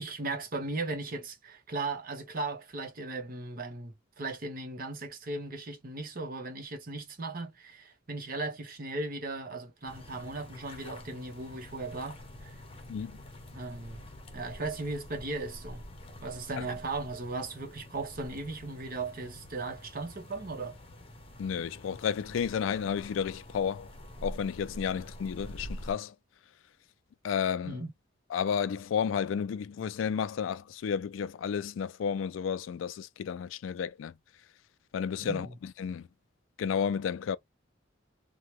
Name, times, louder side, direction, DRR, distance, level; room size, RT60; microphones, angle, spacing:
voice 1, 0.0-12.5 13.5-14.0 14.3-15.8 16.2-20.8 27.6-27.9 35.2-35.5, right 3 dB, 50° right, 1.0 m, -37 dB
sound 1, 9.8-25.9, left 1 dB, 30° left, 0.7 m, -47 dB
voice 2, 21.4-23.9 24.2-26.1 27.2-27.8 28.3-34.1 34.9-36.0 36.6-37.4, left 7 dB, 85° left, 0.3 m, -32 dB
2.8 x 2.2 x 3.0 m
head